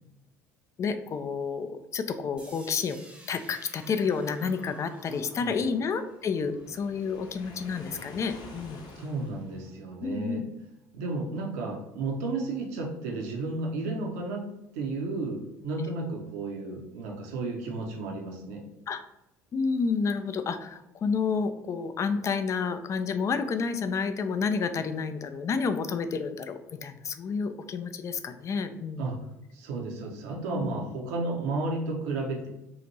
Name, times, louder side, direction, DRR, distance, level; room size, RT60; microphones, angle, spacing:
voice 1, 0.8-3.0 3.3-8.8 10.0-10.4 18.9-19.0 19.5-29.1 30.5-30.9, left 5 dB, 35° left, 9 dB, 0.4 m, -30 dB
sound 1, 2.4-8.3, right 1 dB, 10° right, 0.8 m, -53 dB
Waves surf, 6.4-9.9, left 3 dB, 50° left, 0.8 m, -48 dB
voice 2, 8.9-10.4 10.9-14.4 14.7-18.6 29.0-29.2 29.5-32.5, right 3 dB, 65° right, 0 dB, 0.6 m, -33 dB
2.9 x 2.5 x 4.0 m, 0.88 s
figure-of-eight pair, 60°, 9 cm